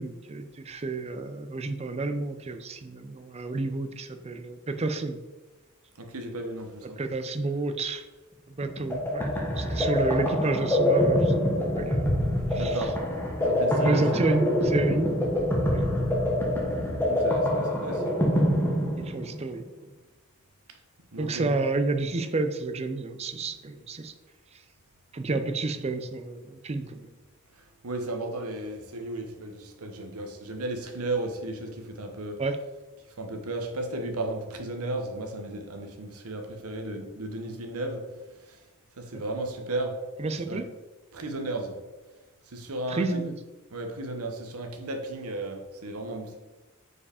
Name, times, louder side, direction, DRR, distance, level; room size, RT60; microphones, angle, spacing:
voice 1, 0.0-5.2 7.0-8.0 8.5-12.0 12.5-12.9 13.8-15.1 15.7-15.9 19.0-19.6 21.2-24.1 25.1-27.1 32.4-32.6 40.2-40.7 42.9-43.3, right 3 dB, 30° right, 9 dB, 0.5 m, -30 dB
voice 2, 6.0-7.0 12.5-12.9 13.4-14.3 17.1-18.2 21.1-21.6 27.8-32.4 33.2-38.0 38.5-38.6 39.0-40.0 40.5-40.6 41.1-41.7 42.5-43.2 43.7-46.4, right 2 dB, 75° right, 5 dB, 1.0 m, -34 dB
sound 1, 8.6-19.5, left 1 dB, 10° left, 1.1 m, -25 dB
5.0 x 4.8 x 4.9 m, 1.2 s
head